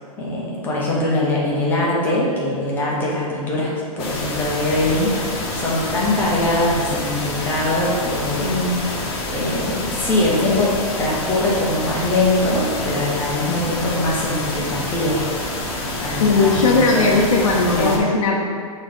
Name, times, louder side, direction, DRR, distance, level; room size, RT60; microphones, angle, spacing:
voice 1, 0.2-8.5 9.3-15.2 16.0-17.2 17.7-17.9, left 1 dB, 10° left, -6 dB, 0.9 m, -22 dB
sound 1, 4.0-18.0, left 2 dB, 45° left, 1.1 m, -27 dB
voice 2, 8.4-8.8 16.2-18.5, left 3 dB, 65° left, -2 dB, 0.9 m, -18 dB
6.2 x 3.2 x 5.2 m, 2.1 s
hypercardioid pair, 170°, 19 cm